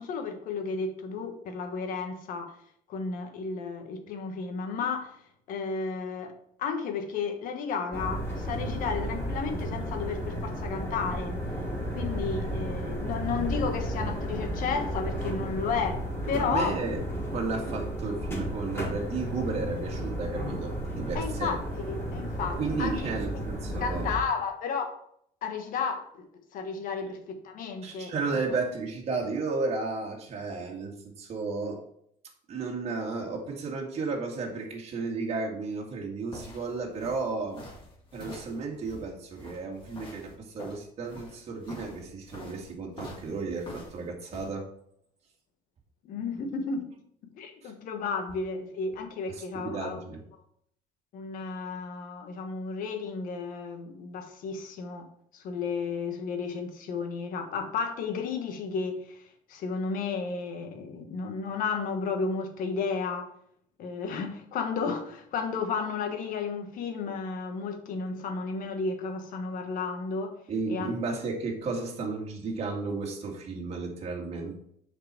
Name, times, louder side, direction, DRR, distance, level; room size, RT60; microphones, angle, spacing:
voice 1, 0.0-2.5 2.9-5.1 5.5-6.3 6.6-11.3 11.9-16.0 16.3-16.8 21.1-21.6 21.9-23.1 23.8-25.0 25.4-26.3 26.5-28.1 46.0-46.9 47.3-50.0 51.1-55.1 55.3-63.3 63.8-70.3 70.7-70.9, left 5 dB, 65° left, 6 dB, 1.3 m, -33 dB
sound 1, 7.9-24.2, equal, 15° left, 3.0 m, -33 dB
voice 2, 16.3-17.0 17.3-21.6 22.6-24.1 27.8-31.8 32.5-37.6 38.1-44.7 47.6-47.7 49.3-50.2 70.5-74.5, right 4 dB, 45° right, -1 dB, 2.0 m, -33 dB
sound 2, 35.9-44.5, left 1 dB, 35° left, 2.2 m, -46 dB
6.8 x 5.0 x 4.5 m, 0.69 s
cardioid pair, 120°, 15 cm